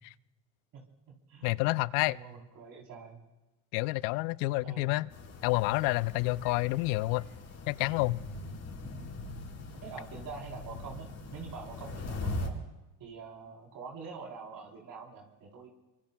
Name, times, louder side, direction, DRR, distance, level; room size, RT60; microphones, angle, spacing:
voice 1, 1.4-2.2 3.7-5.1 5.4-7.2 7.7-8.2, left 21 dB, 80° left, 20 dB, 0.5 m, -29 dB
voice 2, 2.1-3.2 4.6-5.0 8.8-9.1 9.7-12.6 13.0-15.7, right 5 dB, 55° right, 0 dB, 3.8 m, -45 dB
sound 1, 5.1-12.5, left 2 dB, 40° left, 4.6 m, -41 dB
25.0 x 24.5 x 2.3 m, 1.0 s
supercardioid pair, 90°, 38 cm